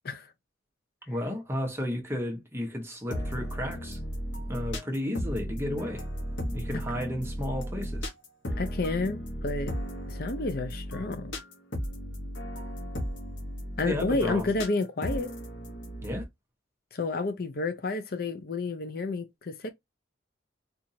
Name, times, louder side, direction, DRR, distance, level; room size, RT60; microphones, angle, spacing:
voice 1, 1.1-4.0 4.5-6.0 6.5-8.1 13.8-14.5 16.0-16.2, left 1 dB, 15° right, 1.1 m, -33 dB
sound 1, 3.1-16.2, equal, 75° left, 1.3 m, -35 dB
voice 2, 8.6-9.7 10.1-11.3 13.8-15.3 16.9-19.7, left 3 dB, 55° left, 0.6 m, -30 dB
4.4 x 2.6 x 2.7 m
head